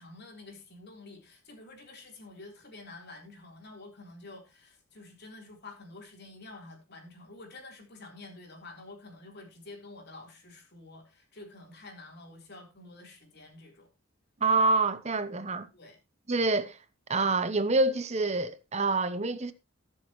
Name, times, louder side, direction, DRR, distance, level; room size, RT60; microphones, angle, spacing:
voice 1, 0.0-13.9 15.7-16.0, left 2 dB, 50° left, 3.9 m, -49 dB
voice 2, 14.4-15.7 16.3-16.8 17.1-19.5, right 3 dB, 30° right, 0.8 m, -26 dB
22.0 x 7.4 x 3.1 m
head